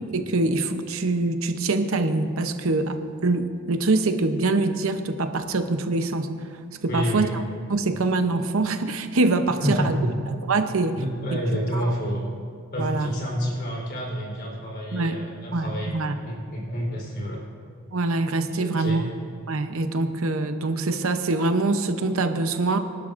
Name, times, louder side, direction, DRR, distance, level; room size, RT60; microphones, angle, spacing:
voice 1, 0.1-6.3 6.8-7.3 7.7-10.0 10.5-11.0 11.7-11.8 12.8-13.1 14.9-15.2 15.5-16.2 17.9-19.0 19.5-22.8, right 3 dB, 75° right, 8 dB, 0.8 m, -24 dB
voice 2, 6.9-7.4 9.5-10.1 11.0-12.2 12.7-17.4 18.6-19.0, equal, 45° left, -3 dB, 3.8 m, -29 dB
24.5 x 11.5 x 2.6 m, 2.3 s
head